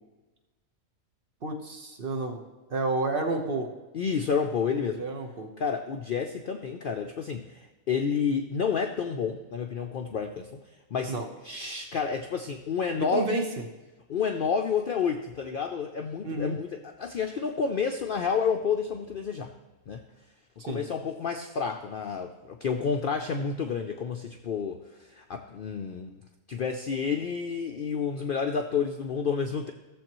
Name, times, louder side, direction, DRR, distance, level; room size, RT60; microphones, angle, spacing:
voice 1, 1.4-2.4 2.7-3.7 4.7-5.5 11.1-11.3 13.0-13.6 16.2-16.6 20.6-20.8, right 3 dB, 45° right, 3 dB, 1.0 m, -30 dB
voice 2, 3.9-5.0 5.6-10.6 10.9-11.1 11.4-13.5 14.1-19.5 19.9-20.0 20.6-26.2 26.5-29.7, left 6 dB, 85° left, 4 dB, 0.4 m, -30 dB
15.0 x 7.1 x 3.0 m, 1.2 s
omnidirectional pair, 1.6 m